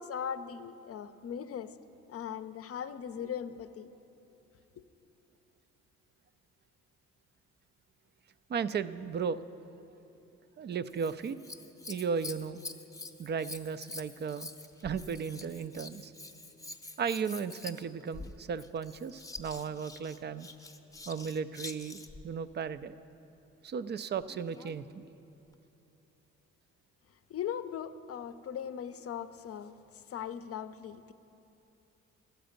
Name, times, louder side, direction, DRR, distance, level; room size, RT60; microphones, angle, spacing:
voice 1, 0.0-1.7 2.1-3.9 27.3-29.7 30.1-31.1, left 8 dB, 45° left, 12 dB, 0.6 m, -39 dB
voice 2, 8.5-9.4 10.6-11.4 11.9-12.6 13.2-14.5 14.8-16.1 17.0-20.5 21.1-23.0 23.6-25.1, right 6 dB, 35° right, 15 dB, 0.4 m, -35 dB
Scissors, 10.9-22.3 24.2-24.8 25.5-25.6, left 3 dB, 10° left, 0.8 m, -46 dB
12.5 x 8.0 x 5.2 m, 2.9 s
supercardioid pair, 65°, 31 cm